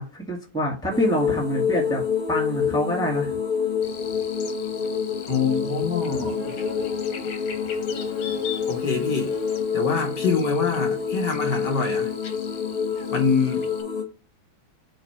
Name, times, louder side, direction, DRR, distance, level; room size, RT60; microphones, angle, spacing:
voice 1, 0.0-2.0 2.3-3.4, equal, ahead, 1.9 m, -26 dB
sound 1, 0.9-14.0, left 6 dB, 30° left, 1.1 m, -27 dB
Buzz, 3.8-13.8, left 6 dB, 80° left, 1.9 m, -40 dB
voice 2, 5.3-6.6 8.7-9.3 9.7-12.1 13.1-13.7, left 5 dB, 55° left, 1.9 m, -25 dB
6.4 x 3.0 x 5.7 m
omnidirectional pair, 2.3 m